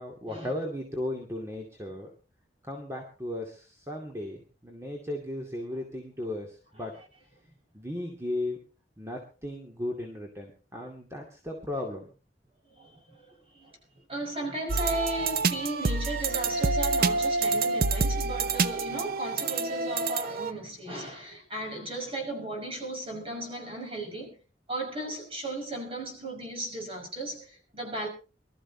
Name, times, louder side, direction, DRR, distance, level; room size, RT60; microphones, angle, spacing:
voice 1, 0.0-2.1 2.6-6.9 7.7-8.6 9.0-12.1, left 1 dB, 15° right, 2.3 m, -36 dB
voice 2, 12.7-13.7 14.1-24.4 24.7-28.1, right 1 dB, 30° right, 5.7 m, -36 dB
sound 1, 14.7-20.5, right 3 dB, 55° right, 0.7 m, -27 dB
24.5 x 13.5 x 2.8 m
head